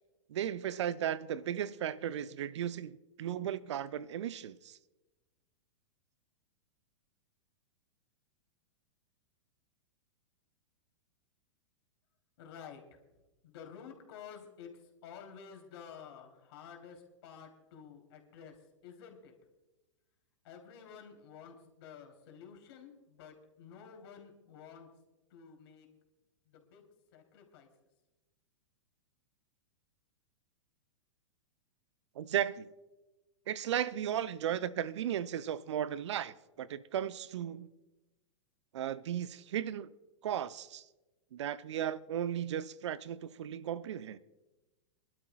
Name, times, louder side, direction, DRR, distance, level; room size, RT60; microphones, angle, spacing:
voice 1, 0.3-4.8 32.2-32.7 33.5-37.7 38.7-39.9 40.2-40.8 41.3-44.2, right 10 dB, 60° right, 0.5 m, -35 dB
voice 2, 12.4-13.0 13.4-14.7 15.0-18.6 18.8-19.3 20.4-24.9 25.3-25.9 26.5-26.8 27.1-27.7, left 7 dB, 50° left, 3.1 m, -51 dB
26.0 x 12.0 x 2.3 m
figure-of-eight pair, 105°, 16 cm